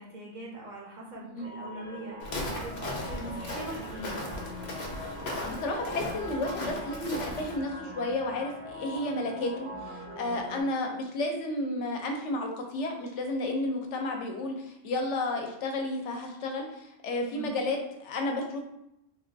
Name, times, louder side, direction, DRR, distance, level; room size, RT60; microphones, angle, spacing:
voice 1, 0.0-4.2 17.2-17.6, right 1 dB, 55° right, -3 dB, 0.5 m, -42 dB
sound 1, 1.4-10.6, equal, 75° right, 0.9 m, -42 dB
Walk footsteps, 2.2-7.6, left 1 dB, 50° left, 0.6 m, -37 dB
voice 2, 5.4-18.6, left 2 dB, 75° left, 3 dB, 0.9 m, -32 dB
3.4 x 2.2 x 2.5 m, 0.83 s
omnidirectional pair, 1.2 m